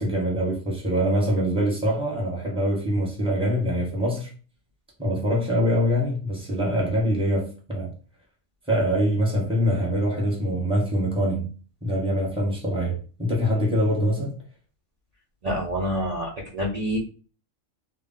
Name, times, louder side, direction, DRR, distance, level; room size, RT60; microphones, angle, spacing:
voice 1, 0.0-4.3 5.0-7.9 8.7-11.5 11.8-14.3, equal, 5° right, 0.9 m, -24 dB
voice 2, 15.4-17.0, equal, 55° right, 0.4 m, -27 dB
2.2 x 2.2 x 3.8 m
omnidirectional pair, 1.4 m